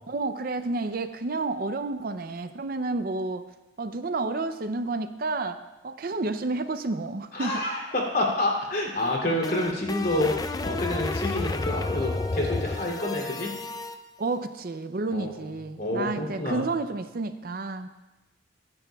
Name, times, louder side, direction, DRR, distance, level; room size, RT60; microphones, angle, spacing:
voice 1, 0.0-3.4 3.8-5.6 5.8-7.6 14.2-17.9, right 3 dB, 45° right, 9 dB, 0.5 m, -30 dB
voice 2, 7.3-13.5 15.1-16.6, left 1 dB, 45° left, -1 dB, 2.9 m, -28 dB
sound 1, 9.0-14.0, left 2 dB, 20° left, 0.4 m, -31 dB
24.0 x 10.5 x 2.3 m, 1.1 s
head